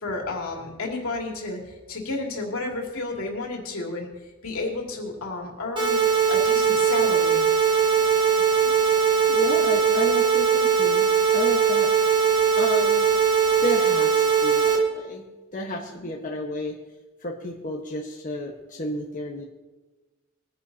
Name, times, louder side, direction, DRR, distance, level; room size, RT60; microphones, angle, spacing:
voice 1, 0.0-4.1 4.4-6.0 6.3-7.4 16.0-16.1, left 3 dB, 85° left, 0 dB, 2.8 m, -31 dB
sound 1, 5.8-14.8, right 6 dB, 25° right, 1.9 m, -20 dB
voice 2, 8.4-8.7 9.3-11.1 11.3-12.2 12.6-13.1 13.6-15.2 15.5-16.8 17.2-19.4, left 1 dB, 40° left, -2 dB, 1.4 m, -32 dB
22.0 x 10.5 x 2.9 m, 1.2 s
head